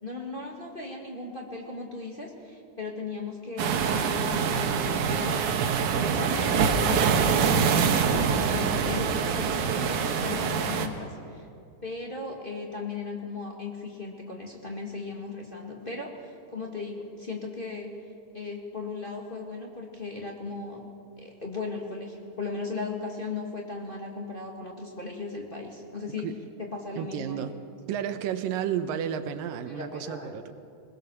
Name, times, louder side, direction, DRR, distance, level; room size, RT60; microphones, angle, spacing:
voice 1, 0.0-5.5 6.0-7.8 8.0-11.5 11.8-17.9 18.3-20.9 21.2-26.3 26.6-27.5 29.7-30.3, left 3 dB, 20° left, -1 dB, 1.5 m, -37 dB
sound 1, 3.6-10.9, right 6 dB, 70° right, 2.6 m, -25 dB
voice 2, 27.0-27.5 27.9-30.5, right 9 dB, 85° right, 9 dB, 2.6 m, -32 dB
22.0 x 21.0 x 7.0 m, 2.5 s
omnidirectional pair, 3.8 m